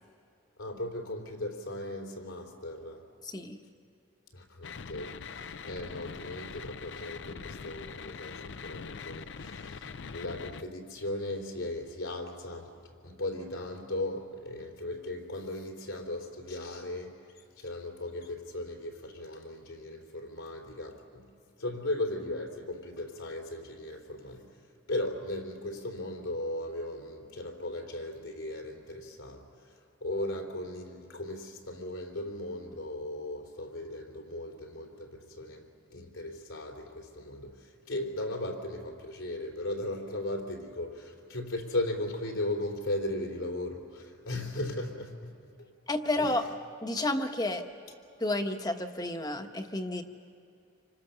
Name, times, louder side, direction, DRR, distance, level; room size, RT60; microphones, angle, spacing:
voice 1, 0.6-3.1 4.3-21.3 21.6-24.6 24.9-29.7 30.0-45.7 46.2-46.3, left 1 dB, 85° left, 2 dB, 3.4 m, -37 dB
voice 2, 3.2-3.6 45.9-46.4 46.8-47.6 48.2-50.0, left 1 dB, 20° left, 6 dB, 1.1 m, -31 dB
sound 1, 4.6-10.6, left 5 dB, 60° left, 0.5 m, -43 dB
27.0 x 25.0 x 6.8 m, 2.5 s
head